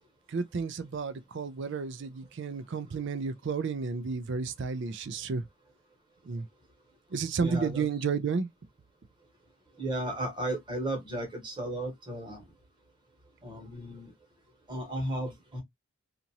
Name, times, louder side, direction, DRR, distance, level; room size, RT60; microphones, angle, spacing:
voice 1, 0.3-5.4 6.3-6.4 7.1-8.5, right 5 dB, 55° right, 0.4 m, -32 dB
voice 2, 7.4-7.9 9.8-12.4 13.4-14.1 14.7-15.6, right 1 dB, 20° right, 1.2 m, -34 dB
2.9 x 2.5 x 2.8 m
head